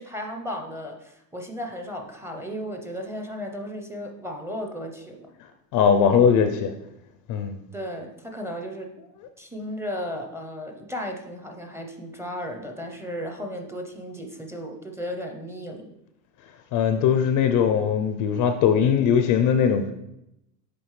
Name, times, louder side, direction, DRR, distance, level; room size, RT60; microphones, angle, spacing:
voice 1, 0.0-5.3 7.7-8.9 9.4-15.9, equal, 5° right, 2 dB, 0.6 m, -35 dB
voice 2, 5.7-6.7 7.3-7.6 16.7-19.9, left 7 dB, 40° left, 8 dB, 0.5 m, -20 dB
8.4 x 3.7 x 3.2 m, 0.85 s
supercardioid pair, 120°, 49 cm